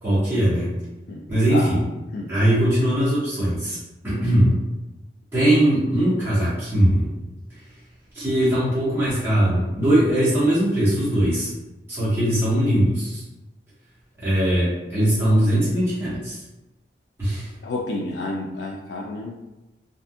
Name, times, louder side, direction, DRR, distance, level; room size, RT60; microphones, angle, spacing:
voice 1, 0.0-0.7 1.3-1.8 2.3-3.8 4.0-4.6 5.3-7.2 8.1-11.5 11.9-13.2 14.2-16.4 17.2-17.5, right 1 dB, 15° right, -11 dB, 1.2 m, -20 dB
voice 2, 17.6-19.4, left 2 dB, 70° left, -2 dB, 0.4 m, -30 dB
3.6 x 2.6 x 2.3 m, 1.0 s
head